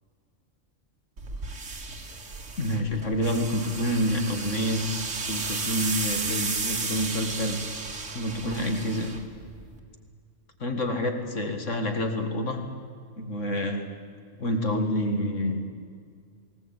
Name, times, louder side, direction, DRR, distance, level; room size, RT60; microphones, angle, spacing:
sound 1, 1.2-9.8, right 4 dB, 75° right, 2.2 m, -34 dB
voice 1, 2.6-4.9 5.3-7.7 8.1-9.2 10.6-12.7 13.2-13.9 14.4-15.6, equal, 70° left, 4 dB, 2.3 m, -28 dB
21.0 x 19.0 x 8.9 m, 2.2 s
omnidirectional pair, 1.3 m